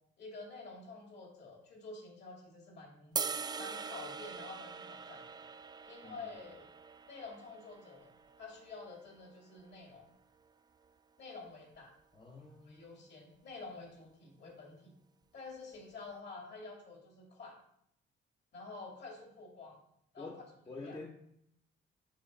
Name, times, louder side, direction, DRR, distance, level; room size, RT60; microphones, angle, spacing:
voice 1, 0.2-3.2 3.6-5.2 5.9-6.7 7.0-8.1 8.4-10.1 11.2-11.9 12.7-14.9 15.3-17.5 18.5-19.8 20.1-20.3 20.8-21.0, left 3 dB, 60° left, 0 dB, 2.4 m, -49 dB
sound 1, 3.2-9.4, right 5 dB, 20° right, 0.3 m, -43 dB
voice 2, 12.1-12.9 20.2-20.4 20.7-21.1, left 3 dB, 25° left, 1 dB, 0.8 m, -47 dB
6.6 x 3.2 x 5.3 m, 0.73 s
cardioid pair, 90°, 20 cm